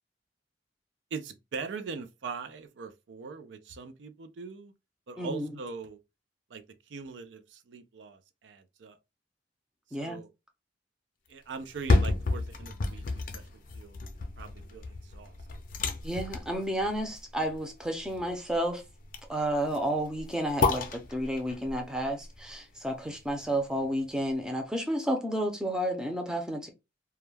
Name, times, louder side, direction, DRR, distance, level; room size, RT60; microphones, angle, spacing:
voice 1, 1.1-4.7 5.1-6.0 6.5-6.6 6.9-9.0 10.0-10.3 11.3-14.0 14.4-15.3, right 5 dB, 90° right, 0.4 m, -41 dB
voice 2, 5.2-5.6 9.9-10.2 16.0-18.8 19.3-26.7, right 1 dB, 5° right, 0.5 m, -31 dB
sound 1, 11.6-23.6 24.1-24.2, left 3 dB, 50° left, 0.5 m, -32 dB
2.2 x 2.1 x 3.2 m
head